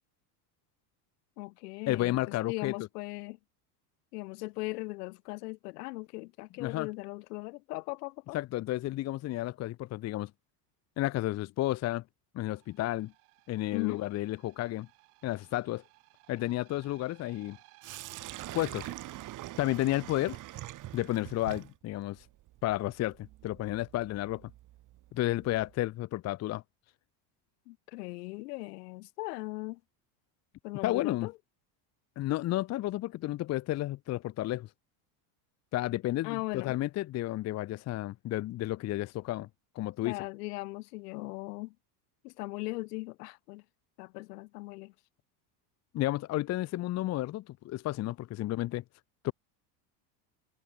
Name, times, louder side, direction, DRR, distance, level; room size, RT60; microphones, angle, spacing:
voice 1, 1.4-3.4 4.1-8.4 13.7-14.0 27.7-29.8 30.6-31.3 36.2-36.7 40.0-41.8 42.2-43.6 44.0-44.9, left 23 dB, 90° left, 5.2 m, -39 dB
voice 2, 1.9-2.7 6.6-6.9 8.3-10.3 11.0-12.0 12.3-13.1 13.5-14.9 15.2-15.8 16.3-17.6 18.5-18.9 19.6-20.4 20.9-22.3 22.6-24.5 25.1-26.6 30.8-31.3 32.2-34.7 35.7-39.5 39.7-40.2 45.9-48.8 49.2-49.3, left 16 dB, 35° left, 0.9 m, -32 dB
sound 1, 12.5-18.6, right 31 dB, 75° right, 7.9 m, -61 dB
Sink (filling or washing), 17.8-25.7, right 16 dB, 40° right, 2.3 m, -45 dB
cardioid pair, 155°, 46 cm